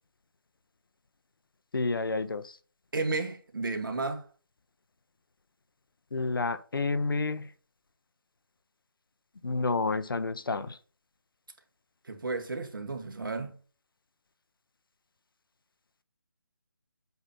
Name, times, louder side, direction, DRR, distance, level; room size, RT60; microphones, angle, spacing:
voice 1, 1.7-2.5 6.1-7.5 9.4-10.8, left 3 dB, 75° left, 0.8 m, -29 dB
voice 2, 2.9-4.2 12.1-13.6, right 3 dB, 65° right, 1.4 m, -33 dB
8.0 x 2.8 x 5.2 m
hypercardioid pair, 175°, 12 cm